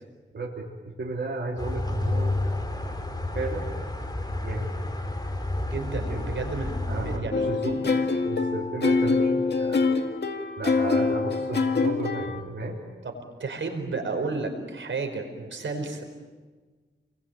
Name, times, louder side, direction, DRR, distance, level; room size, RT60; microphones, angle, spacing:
voice 1, 0.3-0.7 1.0-2.4 3.3-3.8 4.4-4.7 5.9-6.4 6.8-8.0 8.3-10.0 10.6-12.8, right 2 dB, 65° right, -2 dB, 3.5 m, -33 dB
sound 1, 1.6-7.2, left 2 dB, 20° left, 4.2 m, -30 dB
voice 2, 5.7-7.5 8.8-9.0 11.1-11.2 13.0-16.0, right 3 dB, 85° right, 5 dB, 4.9 m, -32 dB
sound 2, 7.3-12.4, left 4 dB, 60° left, 2.2 m, -25 dB
29.0 x 21.5 x 9.2 m, 1.4 s
wide cardioid pair, 80°, 19 cm